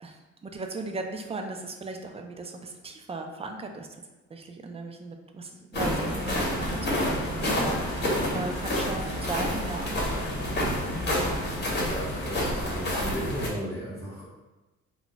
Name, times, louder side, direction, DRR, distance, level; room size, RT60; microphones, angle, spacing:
voice 1, 0.4-3.9 4.3-10.0 10.4-10.6, right 3 dB, 20° right, 4 dB, 0.3 m, -37 dB
sound 1, 5.7-13.5, left 1 dB, 35° left, 0.9 m, -28 dB
voice 2, 11.8-14.3, right 1 dB, 10° left, -10 dB, 0.8 m, -35 dB
2.3 x 2.1 x 3.8 m, 1.1 s
cardioid pair, 90°, 30 cm